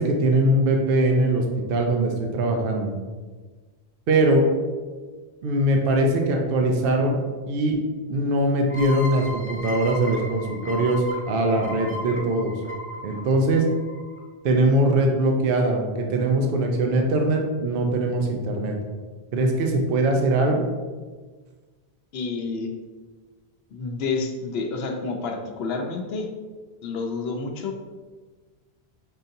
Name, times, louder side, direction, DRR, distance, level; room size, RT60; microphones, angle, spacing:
voice 1, 0.0-1.4 1.7-2.9 4.1-4.4 5.4-7.2 7.5-7.8 8.1-12.5 13.0-13.7 14.4-18.8 19.3-20.6, right 1 dB, 65° right, 2 dB, 0.7 m, -21 dB
sound 1, 8.7-14.2, left 1 dB, 15° left, 0.5 m, -36 dB
voice 2, 22.1-22.7 23.7-26.3 26.8-27.8, left 4 dB, 75° left, 3 dB, 0.8 m, -29 dB
5.6 x 2.7 x 2.6 m, 1.4 s
omnidirectional pair, 1.1 m